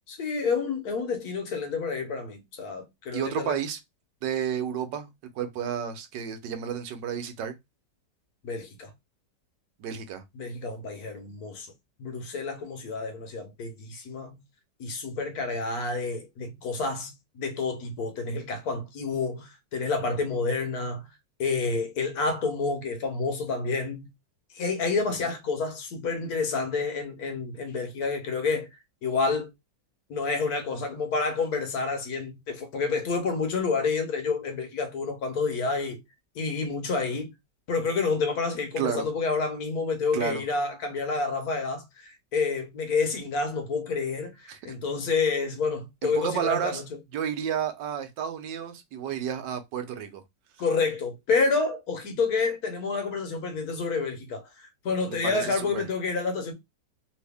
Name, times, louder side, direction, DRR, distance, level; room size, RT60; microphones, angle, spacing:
voice 1, 0.1-3.5 8.4-8.9 10.3-11.7 12.0-14.4 14.8-21.0 21.4-24.1 24.5-28.7 29.0-29.5 30.1-36.0 36.3-37.3 37.7-46.8 50.6-56.5, left 4 dB, 65° left, 1.2 m, -29 dB
voice 2, 3.1-3.8 4.2-5.1 5.3-7.6 9.8-10.2 38.8-39.0 40.1-40.4 44.5-44.6 46.0-46.8 47.1-50.2 55.1-55.8, right 8 dB, 85° right, 1.3 m, -31 dB
3.1 x 2.7 x 3.4 m
omnidirectional pair, 1.9 m